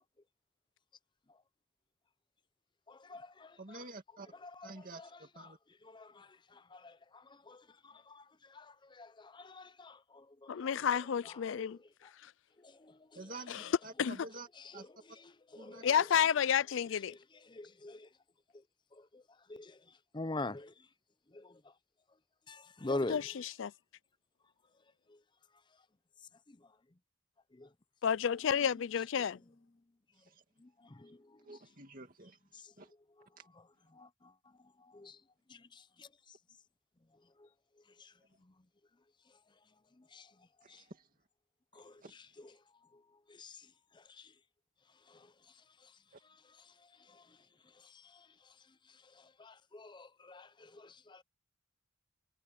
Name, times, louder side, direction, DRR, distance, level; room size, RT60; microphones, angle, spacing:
voice 1, 2.9-3.8 4.4-5.1 5.4-5.5 5.8-5.9 7.1-10.7 11.6-11.7 12.6-13.0 14.6-15.9 17.1-17.2 17.5-18.1 18.9-19.2 19.5-19.8 20.1-20.7 21.3-21.6 22.5-23.2 26.5-26.6 27.5-27.7 30.6-31.2 32.5-32.7 33.9-34.3 34.8-35.2 35.5-36.1 37.4-37.5 38.0-38.1 40.1-40.3 40.7-40.8 41.7-42.0 42.4-42.5 43.3-43.7 44.0-44.3 45.1-45.3 47.1-47.2 47.8-48.3 49.2-51.2, left 2 dB, 20° left, 0.6 m, -45 dB
voice 2, 3.6-4.3 4.6-5.6 13.1-14.5 14.7-14.9 15.6-15.8 30.2-30.4 31.4-32.4 32.8-32.9 40.6-41.1 42.0-42.1 46.1-46.2, right 2 dB, 40° right, 2.4 m, -49 dB
voice 3, 10.5-11.8 12.2-12.3 13.5-13.7 14.0-14.2 15.8-17.2 22.9-23.7 28.0-29.4, left 8 dB, 65° left, 0.4 m, -31 dB
head